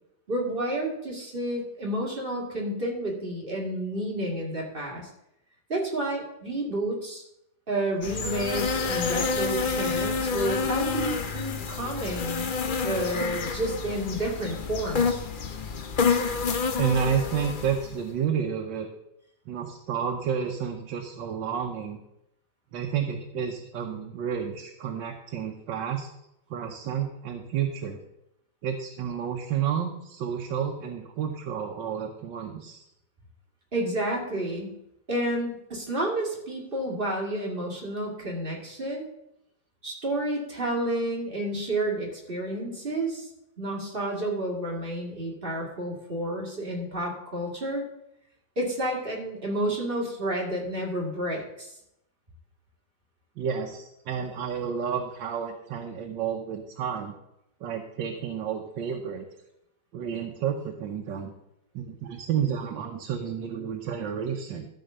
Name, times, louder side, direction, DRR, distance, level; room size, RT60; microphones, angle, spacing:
voice 1, 0.3-5.1 5.7-7.2 7.7-12.5 12.8-15.2 33.7-34.8 35.1-39.1 39.8-43.3 43.6-47.8 48.6-51.7, right 1 dB, 30° right, -1 dB, 2.2 m, -30 dB
sound 1, 8.0-18.0, left 5 dB, 70° left, 0.4 m, -28 dB
voice 2, 16.8-18.9 19.5-22.0 22.7-26.1 26.5-28.0 28.6-32.8 53.4-57.1 57.6-59.2 59.9-61.3 61.7-64.7, right 7 dB, 85° right, 2 dB, 1.6 m, -30 dB
13.0 x 4.4 x 6.6 m, 0.82 s
omnidirectional pair, 1.9 m